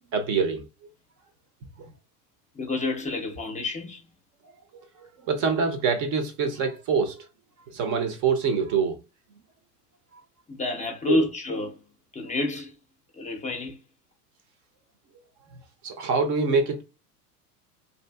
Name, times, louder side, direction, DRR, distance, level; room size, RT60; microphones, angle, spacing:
voice 1, 0.1-0.6 5.3-7.2 7.7-9.0 11.1-11.2 15.8-16.8, right 5 dB, 40° right, 0.7 m, -25 dB
voice 2, 2.5-4.0 10.5-11.8 12.1-12.7 13.1-13.8, left 2 dB, 15° left, 0.6 m, -29 dB
2.7 x 2.4 x 2.2 m
hypercardioid pair, 85°, 46 cm